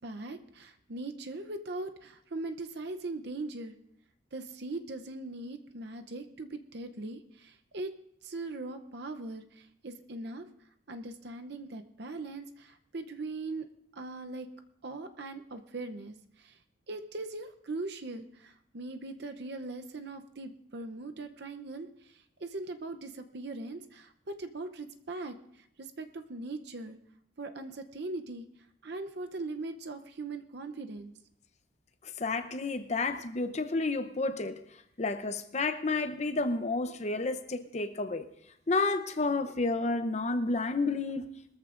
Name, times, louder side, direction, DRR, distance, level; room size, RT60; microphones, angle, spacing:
voice 1, 0.0-3.8 4.3-7.9 8.2-10.5 10.9-13.7 13.9-14.5 14.8-16.6 16.9-27.0 27.4-28.5 28.8-31.1, right 2 dB, 55° right, 0.7 m, -40 dB
voice 2, 32.0-34.6 35.0-38.3 38.7-41.3, left 3 dB, 35° left, 0.7 m, -30 dB
21.5 x 14.0 x 2.5 m
head